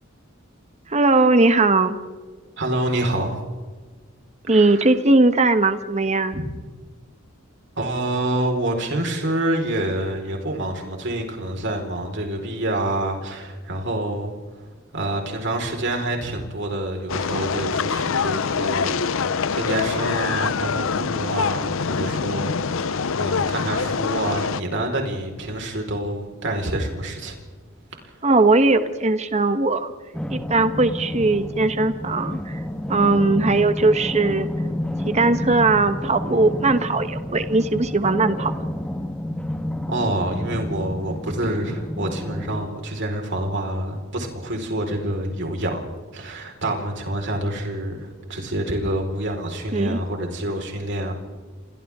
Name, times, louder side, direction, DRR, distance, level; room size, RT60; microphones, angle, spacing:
voice 1, 0.9-2.0 4.5-6.4 28.2-29.9 30.3-32.6 32.9-34.5 35.0-38.5 49.7-50.0, right 3 dB, 35° right, 10 dB, 1.1 m, -19 dB
voice 2, 2.6-3.4 4.5-4.9 6.3-6.5 7.8-14.3 14.9-27.4 28.0-28.1 39.9-45.8 46.1-51.1, right 1 dB, 60° right, 2 dB, 4.6 m, -27 dB
sound 1, 17.1-24.6, left 5 dB, 70° left, 0.7 m, -25 dB
sound 2, 30.1-42.6, left 1 dB, 5° left, 1.5 m, -30 dB
30.0 x 25.5 x 3.7 m, 1.4 s
head